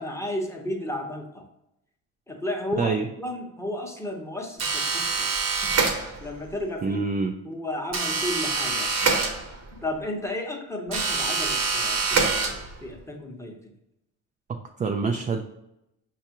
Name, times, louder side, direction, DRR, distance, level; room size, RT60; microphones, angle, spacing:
voice 1, 0.0-1.5 2.3-5.3 5.6-7.0 7.4-8.9 9.7-13.6, left 1 dB, 10° left, 1 dB, 0.9 m, -33 dB
sound 1, 4.6-6.4 7.9-9.8 10.9-12.9, right 4 dB, 45° right, 0.8 m, -25 dB
voice 2, 6.8-7.4 14.5-15.4, right 4 dB, 25° right, 4 dB, 0.3 m, -26 dB
5.2 x 2.4 x 2.9 m, 0.84 s
supercardioid pair, 75°, 36 cm